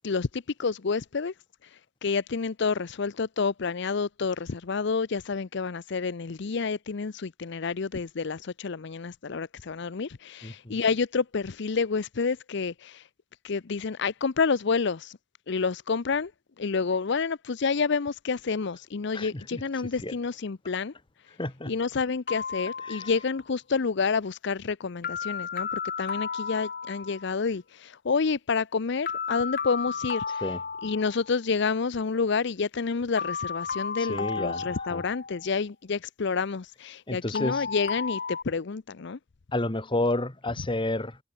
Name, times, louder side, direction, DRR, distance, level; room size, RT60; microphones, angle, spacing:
voice 1, 0.0-1.3 1.6-13.1 13.4-15.2 15.5-16.3 16.6-20.9 21.2-21.4 21.7-30.4 30.8-39.2, left 5 dB, 65° left, 0.6 m, -29 dB
voice 2, 10.4-10.8 19.1-19.6 20.0-20.1 21.4-21.7 22.9-23.1 30.4-30.6 34.0-35.0 37.1-37.6 39.5-41.2, left 1 dB, 25° left, 1.9 m, -30 dB
sound 1, 22.3-23.4 25.0-27.4 29.1-31.4 33.2-35.5 37.3-38.4, left 6 dB, 50° left, 5.1 m, -33 dB
head